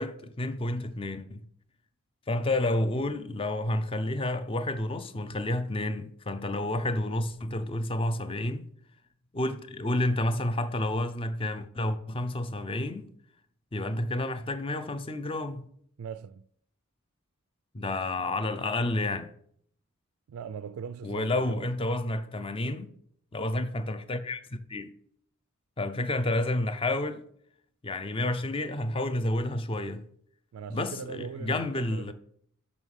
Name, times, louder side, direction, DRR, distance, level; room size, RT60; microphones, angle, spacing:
voice 1, 0.0-1.4 2.3-8.7 9.3-13.1 13.7-15.7 17.7-19.3 21.0-22.9 23.3-24.9 25.8-27.2 27.8-30.0 30.7-32.1, left 1 dB, 25° left, 0.5 m, -30 dB
voice 2, 16.0-16.4 20.3-21.7 30.5-32.1, right 7 dB, 80° right, 0.3 m, -40 dB
6.2 x 5.5 x 6.3 m
head